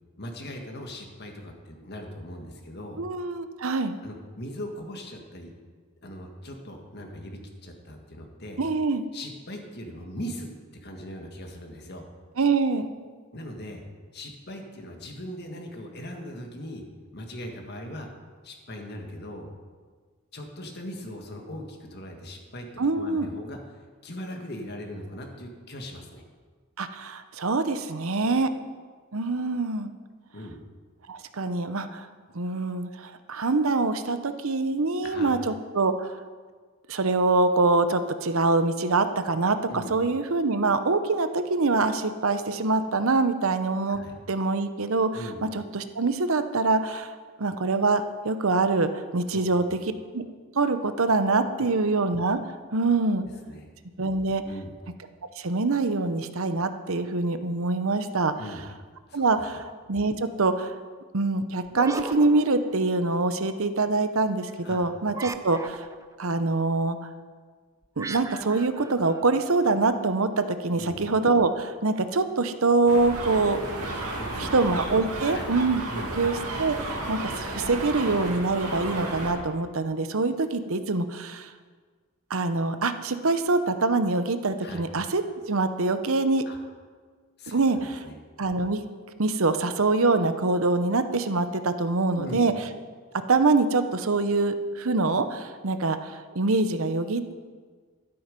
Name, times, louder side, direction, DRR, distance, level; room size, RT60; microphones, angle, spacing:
voice 1, 0.2-3.0 4.0-5.6 6.0-8.6 9.1-10.5 10.8-12.1 13.3-13.8 14.1-16.8 17.1-18.1 18.4-19.5 20.3-23.6 24.0-26.2 28.2-28.4 30.3-30.6 35.0-35.4 39.7-39.9 43.9-44.1 45.1-45.4 49.3-49.8 51.7-51.8 53.1-53.2 53.5-53.7 54.4-54.8 58.4-58.7 59.1-59.2 64.6-64.8 70.7-71.0 74.0-74.6 75.2-75.5 75.9-76.2 84.6-84.8 86.5-86.6 87.4-88.1 92.2-92.4, equal, 45° left, 2 dB, 1.7 m, -39 dB
voice 2, 3.0-4.0 8.6-9.0 12.4-12.9 22.8-23.3 26.8-28.5 29.1-29.9 31.1-32.1 32.3-36.2 36.9-44.0 44.3-47.1 47.4-49.8 50.1-50.2 50.5-52.4 52.7-53.2 54.0-54.4 55.4-58.3 59.1-60.7 61.1-65.8 66.2-67.0 68.0-73.6 74.4-75.8 76.2-81.5 82.3-85.2 85.5-86.5 87.5-88.0 88.4-88.8 89.2-92.5 93.3-97.3, right 3 dB, 65° right, 10 dB, 0.8 m, -24 dB
sound 1, 61.7-63.2 65.1-66.2 68.0-69.8, right 3 dB, 15° right, 0.4 m, -39 dB
sound 2, 72.9-79.3, right 2 dB, 85° right, 2.5 m, -33 dB
12.5 x 12.0 x 5.3 m, 1.6 s
head